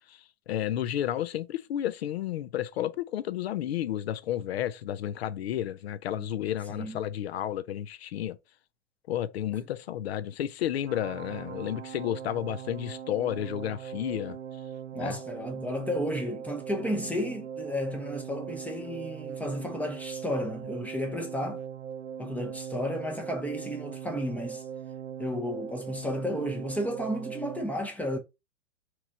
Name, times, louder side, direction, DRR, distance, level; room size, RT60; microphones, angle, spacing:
voice 1, 0.1-8.4 9.1-14.4 15.0-15.2, left 11 dB, 60° left, 0.5 m, -32 dB
sound 1, 10.9-27.7, right 8 dB, 70° right, 0.5 m, -40 dB
voice 2, 14.9-21.6 22.2-24.6 25.2-28.2, equal, 5° left, 0.6 m, -33 dB
3.6 x 3.1 x 4.1 m
figure-of-eight pair, 95°, 36 cm